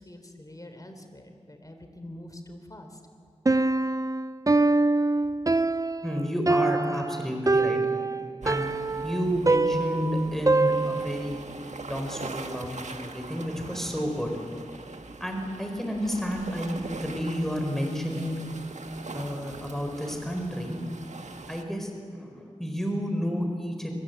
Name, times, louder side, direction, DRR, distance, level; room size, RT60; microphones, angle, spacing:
voice 1, 0.0-3.0, left 1 dB, 30° left, 6 dB, 3.7 m, -45 dB
Piano, 3.5-11.3, right 2 dB, 30° right, 0.6 m, -24 dB
voice 2, 6.0-7.8 8.4-8.7 9.0-11.4 11.9-14.3 15.2-18.4 19.1-20.8 21.5-23.9, equal, 5° left, 3 dB, 4.5 m, -31 dB
sound 1, 8.4-21.6, right 3 dB, 75° right, 1.6 m, -42 dB
24.0 x 22.5 x 8.0 m, 2.2 s
wide cardioid pair, 55°, 12 cm